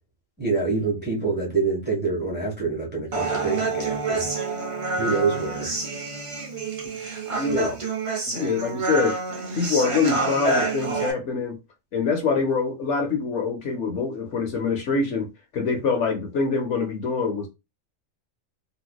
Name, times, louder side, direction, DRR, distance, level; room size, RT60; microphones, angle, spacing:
voice 1, 0.4-4.3 4.9-5.8 7.3-7.7, right 4 dB, 10° right, 1.1 m, -26 dB
Human voice, 3.1-11.1, right 3 dB, 40° right, 0.4 m, -28 dB
voice 2, 7.4-7.7 8.3-9.2 9.5-11.6 11.9-15.3 15.5-17.5, left 4 dB, 65° left, 1.0 m, -24 dB
3.6 x 2.9 x 2.2 m
omnidirectional pair, 1.4 m